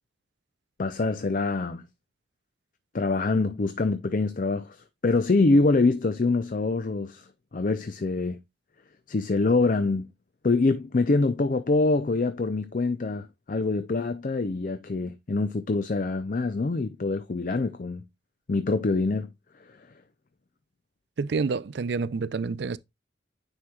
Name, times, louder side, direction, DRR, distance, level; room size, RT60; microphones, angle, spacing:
voice 1, 0.8-1.8 2.9-7.3 7.5-8.4 9.1-10.1 10.4-18.0 18.5-19.3, left 3 dB, 45° left, 0.5 m, -25 dB
voice 2, 21.2-22.8, right 4 dB, 60° right, 0.4 m, -28 dB
9.8 x 4.4 x 2.3 m
head